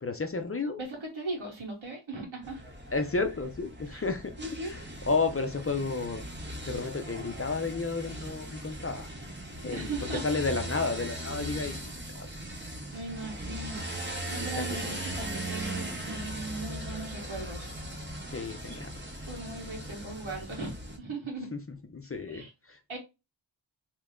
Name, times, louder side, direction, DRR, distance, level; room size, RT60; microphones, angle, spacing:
voice 1, 0.0-0.8 2.9-4.3 4.6-6.2 6.7-9.1 9.6-9.9 10.2-11.8 12.1-12.3 14.5-15.0 18.3-18.9 21.5-22.8, left 4 dB, 30° left, 0.5 m, -32 dB
voice 2, 0.8-2.6 3.9-4.0 4.4-4.7 9.7-10.3 12.9-13.8 14.3-17.7 19.3-21.5 22.3-22.5 22.9-23.0, right 2 dB, 90° right, 1.5 m, -38 dB
sound 1, 2.4-21.0, right 1 dB, 25° right, 0.7 m, -39 dB
2.9 x 2.1 x 3.6 m
wide cardioid pair, 70°, 47 cm